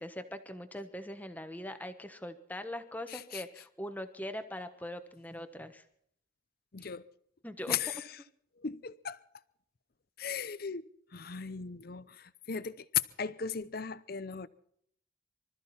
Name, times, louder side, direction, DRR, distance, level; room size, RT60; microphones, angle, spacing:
voice 1, 0.0-5.8 6.8-6.9 7.4-7.8, left 1 dB, 10° left, 1.2 m, -41 dB
voice 2, 3.1-3.4 6.7-7.0 7.7-8.0 8.6-9.2 10.2-12.9 13.2-14.5, left 6 dB, 50° left, 0.7 m, -38 dB
25.0 x 13.5 x 4.3 m
head